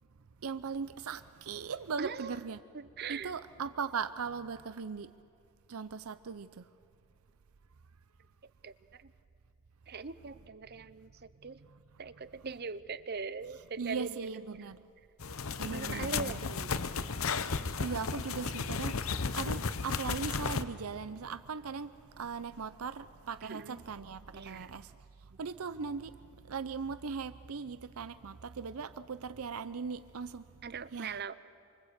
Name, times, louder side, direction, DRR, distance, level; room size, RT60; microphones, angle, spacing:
voice 1, 0.4-2.6 3.1-5.1 5.7-6.6 13.8-14.8 15.6-16.4 17.5-24.9 25.4-26.1 26.5-30.4 30.9-31.1, right 5 dB, 80° right, 0.6 m, -39 dB
voice 2, 2.0-2.4 2.7-3.3 8.6-9.1 9.9-11.6 12.0-14.7 15.7-16.8 23.4-23.9 24.3-24.7 25.3-25.4 30.6-31.3, right 5 dB, 50° right, 0.7 m, -41 dB
sound 1, 15.2-20.6, left 5 dB, 70° left, 0.8 m, -34 dB
27.0 x 24.5 x 8.2 m
head